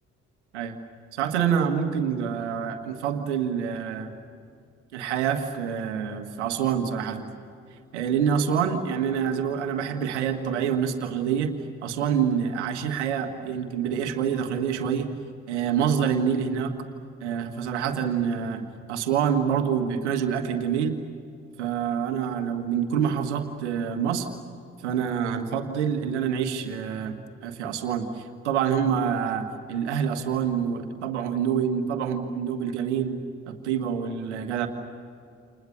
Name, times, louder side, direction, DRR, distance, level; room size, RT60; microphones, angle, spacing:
voice 1, 1.1-4.1 4.9-7.3 7.9-15.1 15.5-16.8 17.2-20.9 21.6-24.3 24.8-33.2 33.5-34.7, right 7 dB, 85° right, 7 dB, 1.8 m, -26 dB
29.5 x 28.5 x 6.8 m, 2.4 s
hypercardioid pair, 45°, 34 cm